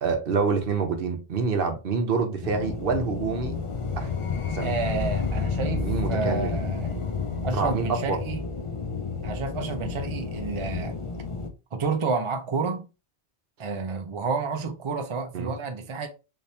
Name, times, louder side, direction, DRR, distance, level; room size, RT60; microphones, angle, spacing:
voice 1, 0.0-3.5 4.0-4.1 4.5-4.7 5.8-6.5 7.5-8.2 15.3-15.5, right 5 dB, 60° right, 0.9 m, -27 dB
sound 1, 2.4-11.5, left 5 dB, 50° left, 0.4 m, -30 dB
voice 2, 4.6-7.0 7.4-8.4 9.2-11.0 11.7-12.8 13.6-16.1, right 4 dB, 40° right, 0.5 m, -30 dB
3.3 x 2.7 x 3.2 m
omnidirectional pair, 1.1 m